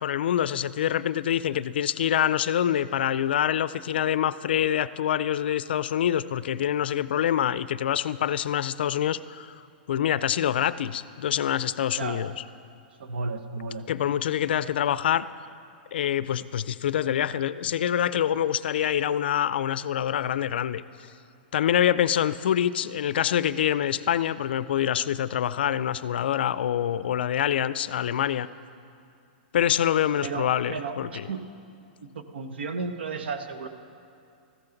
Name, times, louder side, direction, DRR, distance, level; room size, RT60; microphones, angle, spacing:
voice 1, 0.0-9.5 9.9-12.3 13.9-15.3 15.9-20.8 21.5-28.5 29.5-31.3, left 10 dB, 75° left, 16 dB, 0.4 m, -25 dB
voice 2, 11.9-12.2 13.0-13.8 30.2-31.5 32.0-33.7, right 4 dB, 85° right, 8 dB, 1.0 m, -33 dB
14.5 x 14.0 x 3.9 m, 2.5 s
hypercardioid pair, 155°, 6 cm